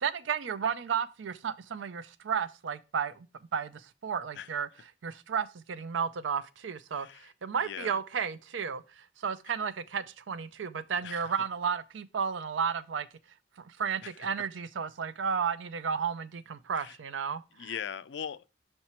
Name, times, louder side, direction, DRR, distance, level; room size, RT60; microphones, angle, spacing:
voice 1, 0.0-3.3 3.5-4.7 5.0-13.1 13.6-17.4, right 6 dB, 85° right, 0.5 m, -33 dB
voice 2, 6.9-7.3 7.6-8.0 9.5-9.6 11.0-11.4 14.0-14.5 16.7-17.0 17.5-18.5, left 8 dB, 70° left, 0.4 m, -41 dB
5.8 x 4.4 x 4.3 m
head